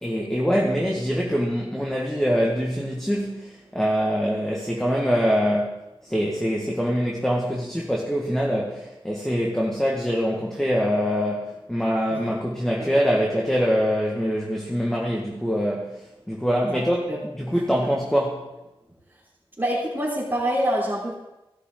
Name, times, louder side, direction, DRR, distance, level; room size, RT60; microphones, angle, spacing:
voice 1, 0.0-5.7 6.0-18.5, equal, 5° left, -2 dB, 1.7 m, -24 dB
voice 2, 16.7-17.2 17.5-17.6 19.6-21.1, equal, 20° right, -9 dB, 3.8 m, -26 dB
16.5 x 11.5 x 3.8 m, 0.97 s
wide cardioid pair, 95°, 10 cm